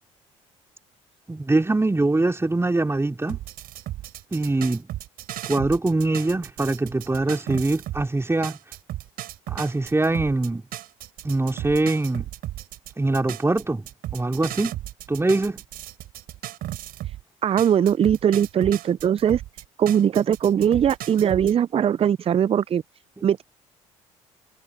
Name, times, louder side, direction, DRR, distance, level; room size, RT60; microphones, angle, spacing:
voice 1, 1.3-3.4 4.3-4.9 5.5-8.6 9.5-10.6 11.2-12.3 13.0-13.9 14.1-14.8 15.1-15.6, right 2 dB, 15° right, 3.6 m, -23 dB
sound 1, 3.3-8.1 8.4-17.2 17.6-21.5, right 14 dB, 65° right, 6.1 m, -35 dB
voice 2, 17.4-19.4 19.8-22.8 23.2-23.4, right 9 dB, 35° right, 0.5 m, -20 dB
hypercardioid pair, 55°, 17 cm